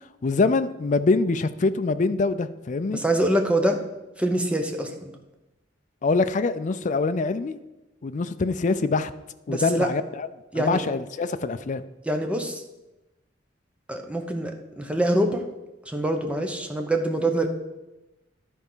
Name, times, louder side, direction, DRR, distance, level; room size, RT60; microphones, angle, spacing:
voice 1, 0.2-3.0 6.0-7.6 8.0-9.1 9.5-10.3 10.5-11.8, left 3 dB, 40° left, 12 dB, 0.4 m, -24 dB
voice 2, 2.9-3.8 4.2-5.1 9.5-9.9 10.5-10.8 12.1-12.6 13.9-15.4 15.9-17.5, right 1 dB, 5° right, 4 dB, 0.8 m, -25 dB
11.0 x 4.5 x 5.5 m, 1.0 s
head